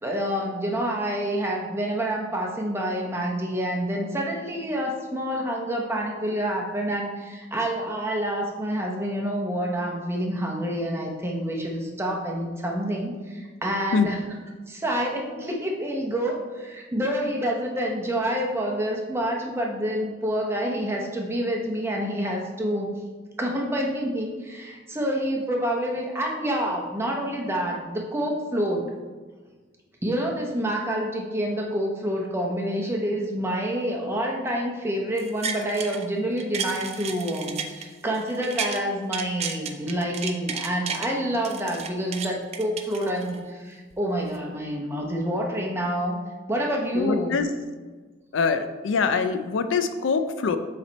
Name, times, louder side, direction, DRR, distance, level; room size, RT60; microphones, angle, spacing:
voice 1, 0.0-14.2 14.7-22.9 23.4-28.8 30.0-46.2 46.5-47.4, equal, 15° right, 0 dB, 0.8 m, -28 dB
sound 1, 35.2-36.0 36.4-38.8 39.1-41.1 41.4-43.4 43.9-44.0, right 6 dB, 35° right, 0.4 m, -33 dB
voice 2, 46.9-47.5 48.3-50.6, left 5 dB, 85° left, 9 dB, 0.4 m, -24 dB
7.0 x 3.3 x 4.0 m, 1.4 s
head